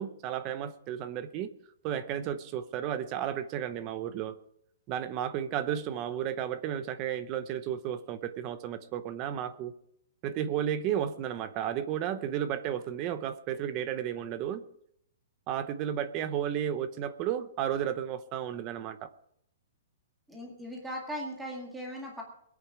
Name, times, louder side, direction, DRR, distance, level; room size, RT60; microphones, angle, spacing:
voice 1, 0.0-1.5 1.8-4.4 4.9-9.7 10.2-14.6 15.5-19.1, right 10 dB, 20° right, 13 dB, 0.8 m, -33 dB
voice 2, 20.3-22.2, equal, 5° right, -1 dB, 2.0 m, -38 dB
22.0 x 8.6 x 4.9 m, 0.72 s
hypercardioid pair, 180°, 0 cm